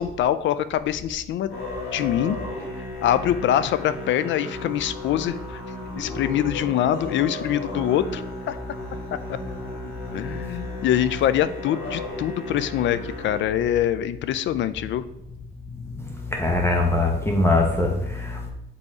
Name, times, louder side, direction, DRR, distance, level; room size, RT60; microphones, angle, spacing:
voice 1, 0.0-1.5 1.9-2.4 3.0-5.6 6.0-8.6 10.1-15.0, left 11 dB, 70° left, 14 dB, 0.4 m, -24 dB
Musical instrument, 1.5-13.4, left 1 dB, 85° left, 2.2 m, -35 dB
voice 2, 16.3-18.5, left 2 dB, 10° left, 0 dB, 1.1 m, -22 dB
5.5 x 4.1 x 4.7 m, 0.82 s
cardioid pair, 90°, 20 cm